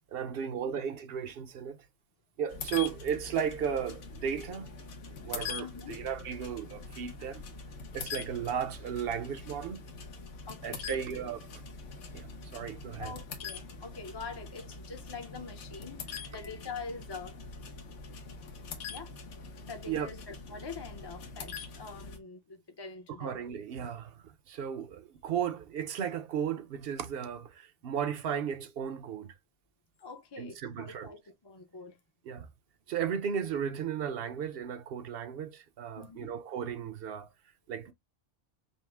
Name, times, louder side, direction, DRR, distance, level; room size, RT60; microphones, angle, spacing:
voice 1, 0.1-1.8 2.4-4.7 5.2-7.4 7.9-9.8 10.6-11.6 12.1-13.1 19.9-20.1 23.2-29.3 30.4-31.1 32.2-32.5 32.9-37.3 37.7-37.9, right 8 dB, 60° right, 0.8 m, -35 dB
sound 1, 2.5-22.2, left 5 dB, 85° left, 1.2 m, -44 dB
voice 2, 5.6-6.0 10.5-11.0 13.0-17.3 18.9-19.1 19.6-23.4 30.0-32.0 36.0-36.3, left 4 dB, 30° left, 0.5 m, -44 dB
5.3 x 2.0 x 3.4 m
omnidirectional pair, 1.2 m